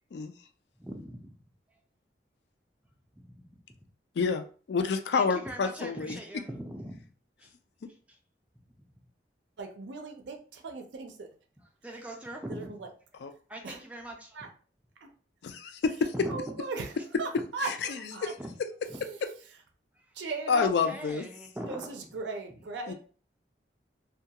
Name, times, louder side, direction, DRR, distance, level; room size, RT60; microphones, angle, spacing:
voice 1, 0.8-1.4 3.1-3.6 5.1-7.1 7.4-7.5 8.1-8.2 11.6-12.7 13.5-14.4 16.1-16.4 18.4-18.5 18.9-19.0 20.0-20.1 20.5-22.2, right 1 dB, 10° right, 1 dB, 0.4 m, -41 dB
voice 2, 4.7-6.1 13.2-13.3 15.4-16.1 17.7-17.8 18.2-18.3 20.5-21.2 22.9-23.0, left 5 dB, 65° left, 8 dB, 0.3 m, -28 dB
voice 3, 9.6-11.3 12.5-12.9 13.6-13.8 14.3-14.5 15.0-15.1 16.3-16.9 17.2-17.7 18.1-18.3 19.0-19.2 20.1-20.7 21.7-22.9, right 3 dB, 80° right, 3 dB, 0.4 m, -38 dB
2.2 x 2.2 x 2.7 m, 0.39 s
head